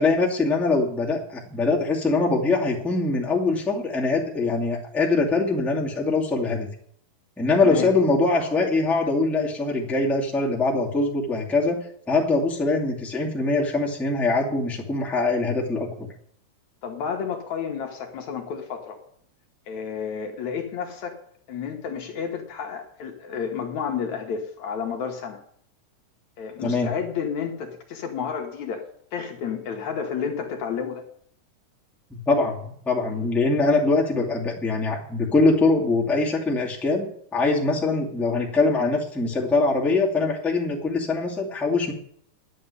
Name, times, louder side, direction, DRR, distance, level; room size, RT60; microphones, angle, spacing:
voice 1, 0.0-6.7 7.4-11.8 12.1-16.1 26.6-26.9 32.1-41.9, left 3 dB, ahead, -3 dB, 1.9 m, -23 dB
voice 2, 16.8-19.0 19.7-21.2 21.5-25.4 26.4-31.1, left 7 dB, 65° left, 3 dB, 2.5 m, -31 dB
10.0 x 8.5 x 9.8 m, 0.64 s
omnidirectional pair, 3.8 m